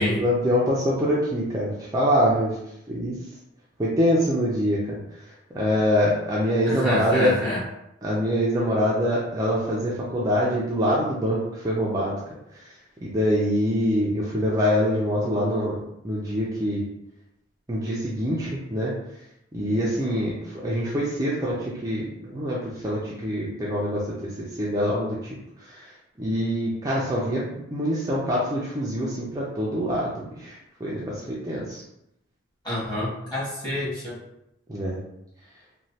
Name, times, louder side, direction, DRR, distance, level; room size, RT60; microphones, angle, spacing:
voice 1, 0.2-2.5 2.9-3.1 3.8-5.0 5.5-7.3 8.0-11.4 11.6-12.2 13.0-15.8 16.0-16.8 17.7-18.9 19.5-20.3 20.6-22.6 22.8-24.0 24.6-25.2 26.2-30.5 30.8-31.2 31.4-31.8 34.7-35.0, equal, 20° right, -6 dB, 0.4 m, -24 dB
voice 2, 6.6-7.6 32.6-34.2, left 1 dB, 20° left, -9 dB, 1.5 m, -27 dB
3.0 x 2.2 x 2.7 m, 0.82 s
head